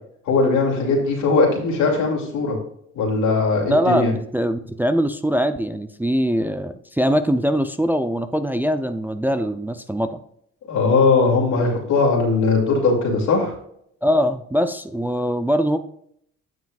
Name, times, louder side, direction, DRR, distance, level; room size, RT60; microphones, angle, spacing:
voice 1, 0.3-2.6 2.9-4.1 10.7-13.5, left 3 dB, 85° left, -1 dB, 2.6 m, -19 dB
voice 2, 3.7-10.2 14.0-15.8, equal, 5° right, 9 dB, 0.4 m, -22 dB
9.4 x 7.1 x 2.4 m, 0.70 s
cardioid pair, 90°, 30 cm